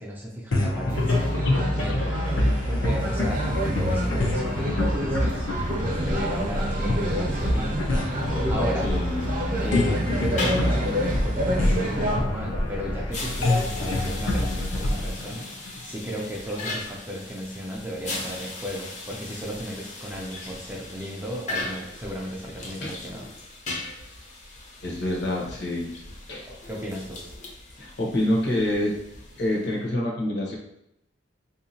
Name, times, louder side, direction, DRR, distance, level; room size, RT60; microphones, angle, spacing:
voice 1, 0.0-1.3 1.7-2.2 2.7-5.5 5.7-7.9 8.5-8.9 9.6-15.5 15.8-23.3 26.5-27.2, equal, 10° right, -3 dB, 0.4 m, -34 dB
sound 1, 0.5-16.1, left 1 dB, 80° left, 0.6 m, -26 dB
sound 2, 0.9-12.2, equal, 45° right, 0.7 m, -29 dB
voice 2, 8.8-9.2 22.8-23.0 24.8-25.9 26.3-26.5 27.8-28.9 29.4-30.6, left 1 dB, 60° left, -3 dB, 1.0 m, -26 dB
sound 3, 10.2-29.8, left 2 dB, 40° left, 0.6 m, -38 dB
3.5 x 2.8 x 2.7 m, 0.79 s
head